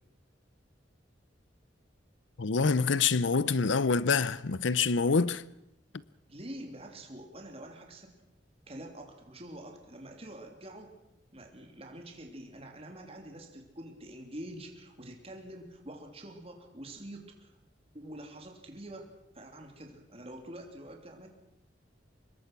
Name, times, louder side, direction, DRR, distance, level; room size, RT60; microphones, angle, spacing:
voice 1, 2.4-5.4, left 4 dB, 90° left, 0.7 m, -26 dB
voice 2, 6.3-8.1 8.7-10.9 11.3-17.5 17.9-21.3, right 1 dB, 30° right, 3.2 m, -46 dB
25.5 x 21.5 x 6.1 m
head